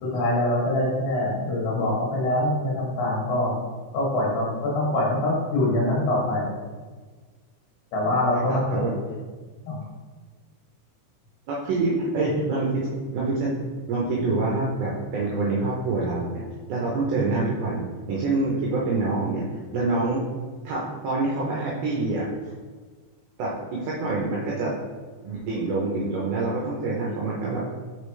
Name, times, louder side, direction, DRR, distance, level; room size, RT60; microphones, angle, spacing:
voice 1, 0.0-3.6 3.9-6.5 7.9-9.1 9.6-9.8, left 1 dB, 70° left, -4 dB, 3.3 m, -24 dB
voice 2, 8.5-8.9 11.5-13.5 13.9-16.4 16.7-19.4 19.7-20.2 20.6-22.5 23.4-24.7 25.2-27.6, right 3 dB, 75° right, -4 dB, 2.2 m, -26 dB
6.0 x 5.1 x 3.2 m, 1.4 s
omnidirectional pair, 5.2 m